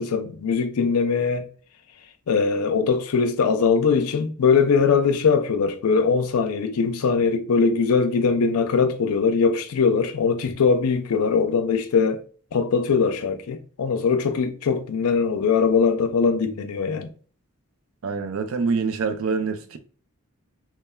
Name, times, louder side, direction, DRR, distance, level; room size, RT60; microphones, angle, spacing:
voice 1, 0.0-1.5 2.3-12.2 12.5-17.1, left 5 dB, 85° left, 0.4 m, -21 dB
voice 2, 18.0-19.8, right 5 dB, 65° right, 0.4 m, -25 dB
3.1 x 2.1 x 2.2 m
head